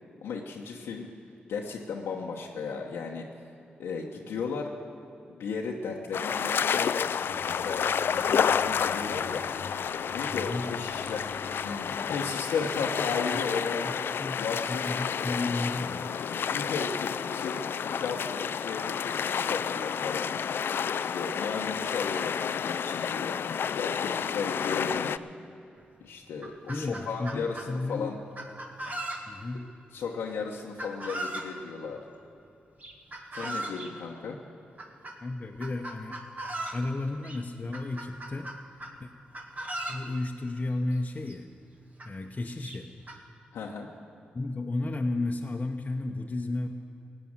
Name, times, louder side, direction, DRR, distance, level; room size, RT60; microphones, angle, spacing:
voice 1, 0.2-1.1 1.5-3.3 3.8-4.7 5.3-7.1 7.5-9.4 10.1-11.3 11.6-13.9 14.4-15.3 16.5-17.6 17.9-23.4 23.8-25.2 26.0-28.2 29.9-32.0 33.3-34.4 43.5-43.9, left 5 dB, 85° left, -2 dB, 1.0 m, -35 dB
sound 1, 6.1-25.2, left 7 dB, 65° left, 0.4 m, -30 dB
sound 2, 7.1-12.3, left 2 dB, 55° right, 4.3 m, -47 dB
voice 2, 10.3-10.7 14.2-16.3 26.7-28.2 29.3-29.7 35.2-36.2 36.7-38.5 39.0-39.1 39.9-41.5 42.0-42.9 44.3-46.7, left 2 dB, 35° left, 1 dB, 1.0 m, -33 dB
Chicken rooster, 25.8-25.9 26.2-27.7 28.4-29.5 30.8-31.5 32.8-33.9 34.8-35.2 35.6-36.8 37.2-37.4 37.7-39.0 39.3-40.0 41.0-41.1 41.3-41.4 42.0-42.1 42.6-43.2, right 1 dB, 40° right, 2.1 m, -37 dB
16.5 x 9.1 x 7.4 m, 2.7 s
supercardioid pair, 45°, 4 cm